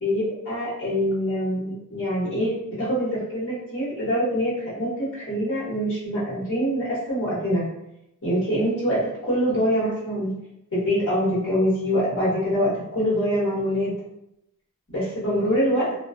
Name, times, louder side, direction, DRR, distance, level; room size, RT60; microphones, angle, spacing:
voice 1, 0.0-7.6 8.2-10.3 10.7-13.9 14.9-15.9, equal, 55° left, -8 dB, 0.9 m, -24 dB
2.3 x 2.1 x 2.5 m, 0.82 s
head